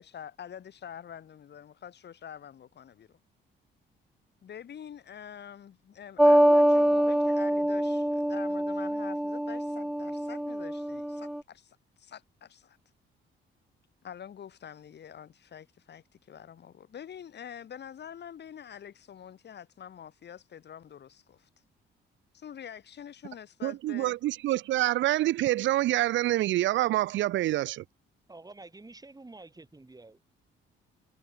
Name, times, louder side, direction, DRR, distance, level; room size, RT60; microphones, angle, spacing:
voice 1, 0.0-3.2 4.4-12.8 14.0-21.5 22.3-24.1, left 9 dB, 60° left, 6.5 m, -46 dB
sound 1, 6.2-11.4, right 1 dB, ahead, 0.5 m, -25 dB
voice 2, 23.6-27.8, right 15 dB, 70° right, 0.4 m, -26 dB
voice 3, 28.3-30.2, right 2 dB, 20° right, 4.8 m, -49 dB
cardioid pair, 90°, 20 cm